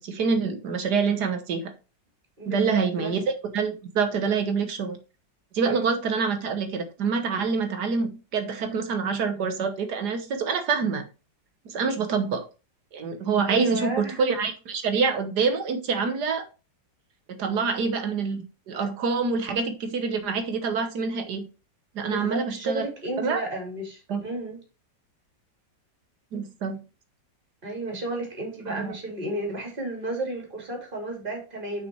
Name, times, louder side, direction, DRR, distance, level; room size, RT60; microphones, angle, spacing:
voice 1, 0.0-1.7 2.5-3.2 3.5-5.0 5.5-11.0 11.7-12.4 12.9-16.5 17.3-21.4 22.0-22.9 23.2-23.4 24.1-24.2 26.3-26.8 28.7-28.9, right 5 dB, 65° right, 1.7 m, -26 dB
voice 2, 2.4-3.1 5.6-5.9 13.5-14.2 22.0-24.6 27.6-31.9, right 2 dB, 25° right, 3.0 m, -32 dB
6.1 x 5.7 x 4.6 m
omnidirectional pair, 2.0 m